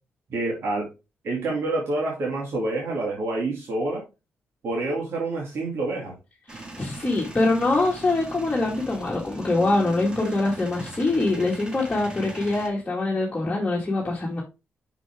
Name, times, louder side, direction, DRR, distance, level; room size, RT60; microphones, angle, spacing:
voice 1, 0.3-0.9 1.2-4.0 4.6-6.1, right 2 dB, 70° right, 2.5 m, -27 dB
voice 2, 6.5-14.4, left 2 dB, 20° left, 2.0 m, -24 dB
Male speech man speaking / Vehicle / Engine starting, 6.5-12.7, right 2 dB, 20° right, 1.9 m, -40 dB
6.1 x 5.8 x 3.6 m
cardioid pair, 100°, 4 cm